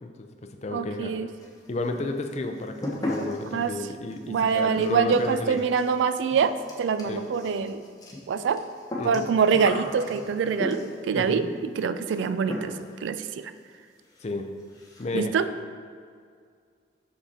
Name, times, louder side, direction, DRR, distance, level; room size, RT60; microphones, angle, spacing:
voice 1, 0.0-1.1 1.7-5.7 7.0-7.2 9.0-9.2 11.1-11.5 14.2-14.5 15.0-15.3, left 2 dB, 35° left, 6 dB, 0.4 m, -32 dB
voice 2, 0.7-1.3 3.5-3.7 4.3-6.5 6.8-7.8 8.3-8.6 9.0-12.7 13.0-13.5 15.1-15.5, right 6 dB, 75° right, 12 dB, 0.3 m, -25 dB
sound 1, 1.4-1.9 2.2-11.1 12.1-12.2 12.5-13.0 13.3-13.4 13.7-13.8 14.1-14.3 14.6-15.1, left 1 dB, 20° left, 0.9 m, -37 dB
5.8 x 5.6 x 4.2 m, 2.1 s
head